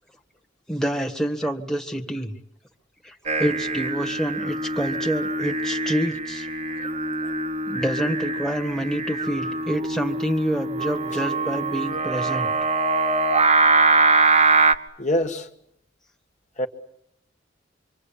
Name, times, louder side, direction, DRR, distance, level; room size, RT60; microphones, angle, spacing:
voice 1, 0.7-2.3 3.0-6.5 6.7-6.9 7.2-7.3 7.7-12.5, right 1 dB, 5° left, 1.7 m, -28 dB
Singing, 3.3-14.7, right 3 dB, 35° right, 1.3 m, -23 dB
voice 2, 15.0-15.5 16.6-16.7, left 1 dB, 40° left, 1.9 m, -24 dB
26.0 x 25.5 x 8.8 m
head